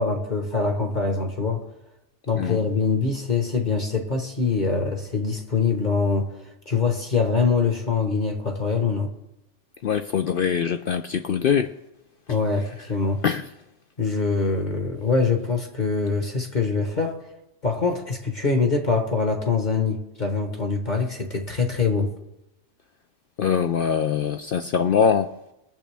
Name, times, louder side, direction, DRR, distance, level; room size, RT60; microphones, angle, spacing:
voice 1, 0.0-1.6 2.3-9.1 12.3-13.2 14.0-17.2 17.6-22.1, left 4 dB, 40° left, 1.3 m, -24 dB
voice 2, 9.8-11.7 13.2-13.4 23.4-25.4, left 7 dB, 60° left, 0.6 m, -23 dB
21.5 x 7.4 x 3.4 m
omnidirectional pair, 1.3 m